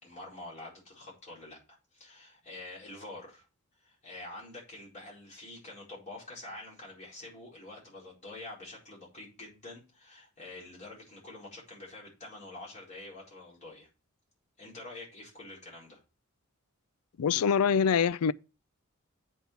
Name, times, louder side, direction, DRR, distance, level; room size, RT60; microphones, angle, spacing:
voice 1, 0.0-1.6 1.9-3.5 3.8-13.9 14.6-16.0, left 2 dB, 35° left, 4.4 m, -47 dB
voice 2, 17.2-18.3, left 7 dB, 75° left, 0.4 m, -24 dB
8.3 x 4.5 x 6.8 m
head